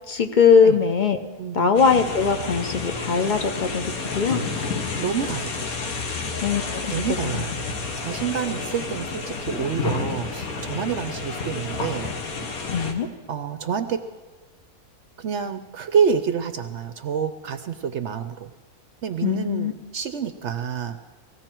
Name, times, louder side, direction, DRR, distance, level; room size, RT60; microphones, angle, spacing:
voice 1, 0.1-1.2 1.5-4.4 6.4-6.6 7.3-7.4 12.7-13.1 19.2-19.7, left 6 dB, 40° left, 7 dB, 0.7 m, -20 dB
sound 1, 1.8-12.9, left 4 dB, 70° left, 1.8 m, -30 dB
voice 2, 5.0-5.7 6.9-7.5 8.0-12.1 13.3-14.1 15.2-18.5 19.0-21.0, right 7 dB, 60° right, 10 dB, 0.8 m, -27 dB
18.0 x 15.5 x 4.5 m, 1.3 s
omnidirectional pair, 1.6 m